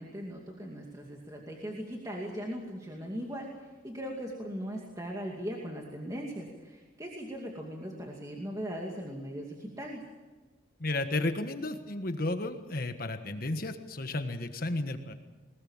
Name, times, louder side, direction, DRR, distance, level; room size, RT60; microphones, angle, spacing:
voice 1, 0.0-3.5 3.8-10.0, equal, 15° right, -1 dB, 2.4 m, -39 dB
voice 2, 10.8-15.1, left 2 dB, 45° left, 7 dB, 1.5 m, -33 dB
21.0 x 20.5 x 7.3 m, 1.3 s
head